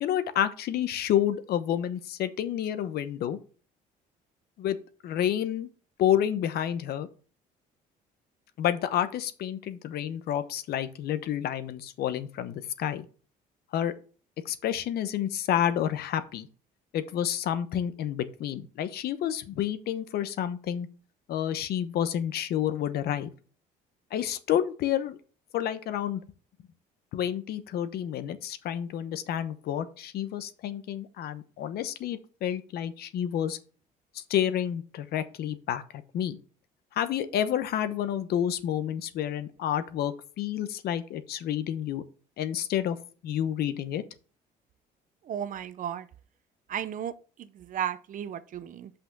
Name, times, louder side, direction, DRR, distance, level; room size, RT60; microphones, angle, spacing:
voice 1, 0.0-3.4 4.6-4.8 5.0-5.7 6.0-7.1 8.6-13.1 13.7-13.9 14.4-16.5 16.9-20.9 21.3-23.3 24.1-25.2 25.5-26.2 27.1-33.6 34.1-36.4 36.9-42.0 42.4-43.0 43.2-44.0, left 10 dB, 70° left, 0.9 m, -29 dB
voice 2, 45.3-46.1 46.7-47.1 47.4-48.9, right 9 dB, 50° right, 0.7 m, -34 dB
5.7 x 5.7 x 6.6 m
cardioid pair, 110°, 17 cm